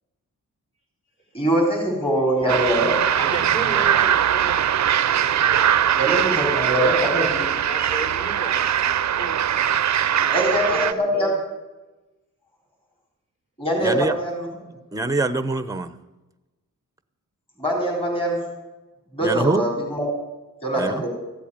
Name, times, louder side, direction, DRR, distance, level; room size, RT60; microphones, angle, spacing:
voice 1, 1.3-3.0 6.0-7.4 10.3-11.3 13.6-14.5 17.6-18.4 19.1-20.1 20.6-21.1, right 1 dB, 15° left, -2 dB, 4.5 m, -22 dB
sound 1, 2.5-10.9, right 9 dB, 60° right, 0.6 m, -21 dB
voice 2, 3.2-9.4 10.2-11.4, right 2 dB, 40° left, -1 dB, 5.6 m, -36 dB
voice 3, 13.8-14.2 14.9-15.9 19.2-19.6 20.7-21.0, right 3 dB, 10° right, 12 dB, 0.9 m, -24 dB
15.0 x 8.3 x 8.8 m, 1.1 s
wide cardioid pair, 115°, 32 cm